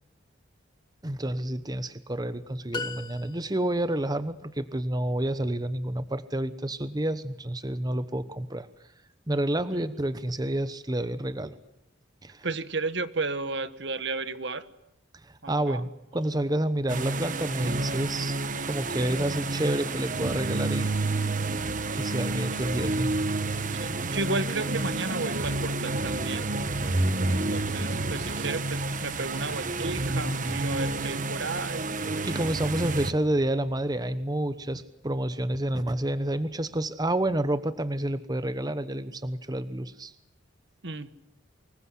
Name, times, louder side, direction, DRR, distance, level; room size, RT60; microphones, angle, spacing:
voice 1, 1.0-8.7 9.3-11.6 12.2-12.5 15.2-20.9 21.9-23.2 32.2-40.1, right 1 dB, 20° right, 13 dB, 1.0 m, -29 dB
sound 1, 2.7-3.9, left 3 dB, 25° left, 1.5 m, -37 dB
voice 2, 12.4-14.6 15.4-15.8 22.3-22.4 23.7-26.5 27.3-31.9 40.8-41.1, right 3 dB, 60° right, 13 dB, 1.4 m, -33 dB
sound 2, 16.9-33.1, right 2 dB, 40° right, 1.3 m, -29 dB
sound 3, 28.2-28.7 30.3-30.7 32.3-32.6, right 3 dB, 85° right, 4.9 m, -46 dB
25.0 x 21.5 x 9.9 m, 0.84 s
head